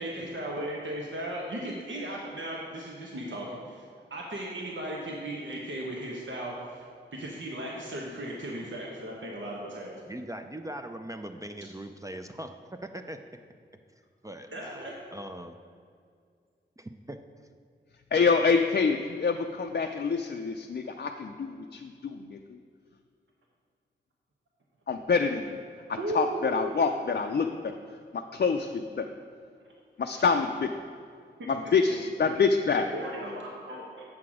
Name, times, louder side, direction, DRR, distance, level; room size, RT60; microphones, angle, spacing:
voice 1, 0.0-10.0 14.5-15.0 26.0-26.7 30.1-30.2 31.4-31.5 32.9-34.0, right 1 dB, 75° right, -2 dB, 1.1 m, -36 dB
voice 2, 10.1-13.2 14.2-15.6 16.8-17.5, right 1 dB, 15° right, 6 dB, 0.4 m, -41 dB
voice 3, 18.1-22.6 24.9-25.6 25.9-29.2 30.0-30.8 31.5-32.9, left 5 dB, 55° left, 4 dB, 0.4 m, -27 dB
7.6 x 6.0 x 4.8 m, 2.2 s
wide cardioid pair, 55°, 20 cm